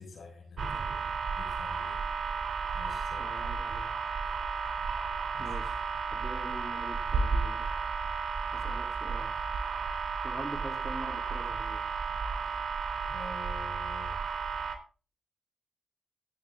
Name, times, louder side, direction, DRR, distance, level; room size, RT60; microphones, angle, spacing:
voice 1, 0.0-2.0 2.3-3.4 5.3-5.5 13.0-14.2, left 3 dB, 65° left, 2 dB, 6.1 m, -47 dB
sound 1, 0.6-14.7, right 5 dB, 65° right, 3.0 m, -33 dB
voice 2, 3.2-3.9 5.4-5.8 6.1-7.7 8.5-9.4 10.2-11.9, equal, 5° right, 3 dB, 3.3 m, -44 dB
15.0 x 8.4 x 3.7 m, 0.36 s
supercardioid pair, 50°, 0 cm